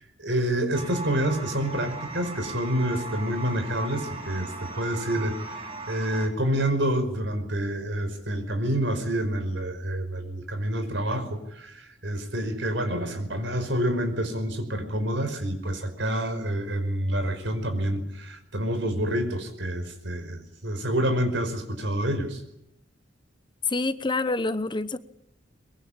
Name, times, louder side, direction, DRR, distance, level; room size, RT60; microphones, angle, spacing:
voice 1, 0.0-22.4, right 1 dB, 70° right, 8 dB, 5.2 m, -28 dB
sound 1, 0.7-6.3, right 3 dB, 30° right, 4.8 m, -38 dB
voice 2, 23.7-25.0, left 3 dB, 25° left, 13 dB, 0.9 m, -27 dB
23.0 x 22.0 x 8.7 m, 0.82 s
head